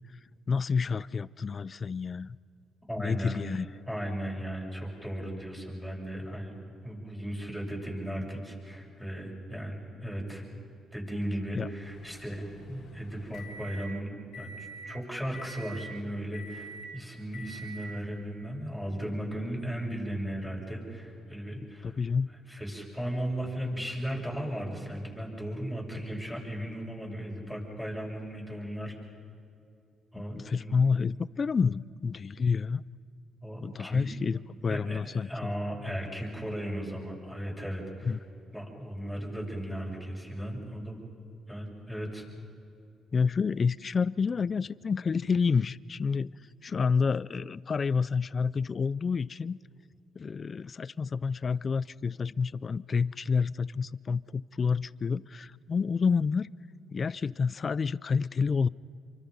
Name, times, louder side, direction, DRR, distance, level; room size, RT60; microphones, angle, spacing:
voice 1, 0.5-2.4 3.0-3.7 11.5-11.7 21.8-22.3 30.2-32.8 33.6-35.5 38.0-38.2 43.1-46.3 46.6-49.6 50.2-56.5 56.9-58.7, left 5 dB, 40° left, 20 dB, 0.4 m, -29 dB
voice 2, 2.9-3.4 3.9-6.6 6.8-10.4 10.9-22.0 22.5-28.9 30.1-30.8 33.4-34.4 34.7-38.2 38.5-41.0 41.5-42.2, equal, ahead, -2 dB, 7.6 m, -36 dB
sound 1, 11.8-13.9 14.3-14.9 15.3-15.9 16.3-16.9 17.3-17.9, right 1 dB, 70° left, 3.6 m, -46 dB
28.5 x 24.5 x 5.4 m, 2.6 s
cardioid pair, 90°, 0 cm